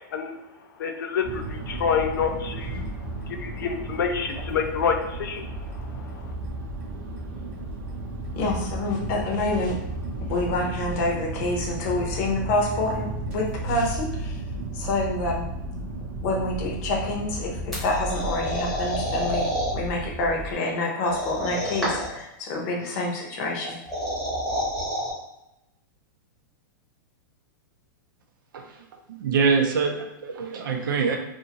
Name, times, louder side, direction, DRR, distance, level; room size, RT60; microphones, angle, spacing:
voice 1, 0.8-2.8 3.3-5.7 5.9-6.1, left 6 dB, 80° left, 5 dB, 0.5 m, -27 dB
sound 1, 1.2-20.5, right 2 dB, 40° right, 0.7 m, -33 dB
voice 2, 8.3-9.7 10.3-14.4 14.7-15.5 16.2-19.5 19.7-23.8, left 2 dB, 45° left, -1 dB, 0.7 m, -27 dB
sound 2, 17.7-19.7 21.0-22.2 23.6-25.1, equal, ahead, 0.9 m, -28 dB
voice 3, 29.2-31.2, right 5 dB, 85° right, 3 dB, 0.6 m, -24 dB
2.6 x 2.5 x 2.8 m, 0.87 s
supercardioid pair, 155°, 11 cm